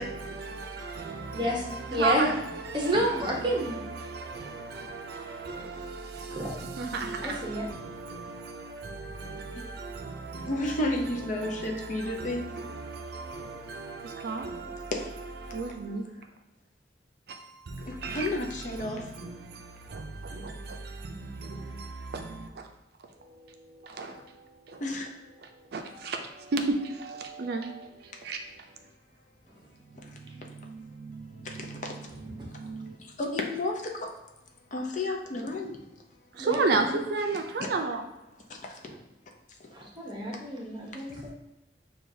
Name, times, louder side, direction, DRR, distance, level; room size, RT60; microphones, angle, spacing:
voice 1, 0.0-16.1 17.3-22.7 23.2-24.9 25.4-28.6 29.9-33.0 36.3-38.1, right 3 dB, 60° right, 0.4 m, -35 dB
voice 2, 1.3-2.3 2.7-3.8 6.2-6.5 7.2-7.6 32.4-32.7 36.4-37.0 38.9-39.0 39.7-41.2, equal, 25° right, 0.8 m, -30 dB
voice 3, 10.5-12.4 14.9-15.1 17.9-19.1 24.8-25.1 31.4-31.5 33.2-34.1 34.7-35.8 38.5-38.8, left 2 dB, 45° left, 0.5 m, -31 dB
6.3 x 2.3 x 2.7 m
head